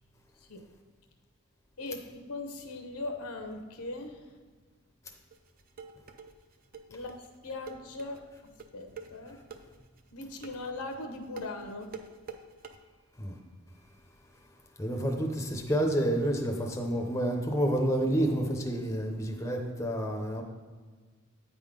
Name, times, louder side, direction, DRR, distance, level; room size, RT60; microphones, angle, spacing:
voice 1, 1.8-4.2 6.9-7.2 7.4-8.2 8.7-9.4 10.1-11.9, left 2 dB, 80° left, 5 dB, 0.9 m, -39 dB
sound 1, 5.3-12.8, right 5 dB, 40° right, 0.4 m, -46 dB
voice 2, 14.8-20.4, right 1 dB, 15° left, 2 dB, 0.6 m, -29 dB
8.6 x 3.7 x 5.0 m, 1.5 s
head